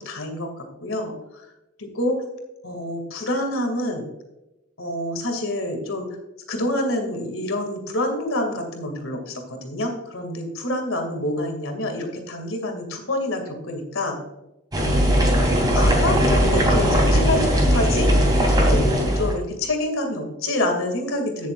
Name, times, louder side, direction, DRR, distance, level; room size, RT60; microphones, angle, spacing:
voice 1, 0.0-1.5 1.8-2.2 2.6-4.0 4.8-6.2 6.5-14.2 15.7-18.1 18.7-21.5, left 1 dB, 90° left, 4 dB, 2.4 m, -27 dB
sound 1, 14.7-19.3, equal, 20° right, 2.7 m, -18 dB
16.0 x 7.0 x 2.5 m, 0.94 s
head